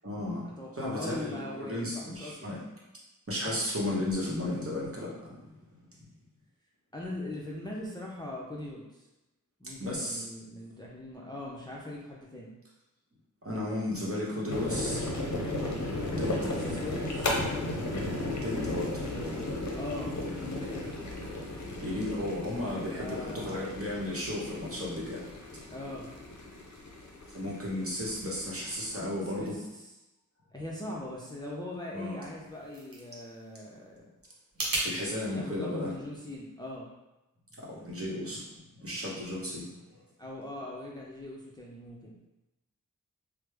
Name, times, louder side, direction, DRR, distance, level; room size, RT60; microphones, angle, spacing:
voice 1, 0.0-0.4 0.7-2.6 3.3-5.6 9.8-10.2 13.4-15.1 16.0-16.4 18.4-19.4 21.6-25.2 27.3-29.6 31.9-32.3 34.8-35.9 37.6-38.4 38.8-40.0, left 1 dB, 40° right, -5 dB, 0.9 m, -34 dB
voice 2, 0.6-2.5 6.9-9.0 9.6-12.5 16.3-17.3 19.1-20.9 22.7-23.7 25.7-26.1 29.4-29.9 30.5-33.9 35.3-36.9 40.2-42.2, left 1 dB, 10° left, -4 dB, 0.5 m, -41 dB
sound 1, 14.5-29.0, left 1 dB, 55° left, 0.6 m, -35 dB
sound 2, 32.3-34.9, right 1 dB, 80° right, 0.8 m, -37 dB
3.2 x 2.0 x 3.2 m, 0.99 s
wide cardioid pair, 40°, 34 cm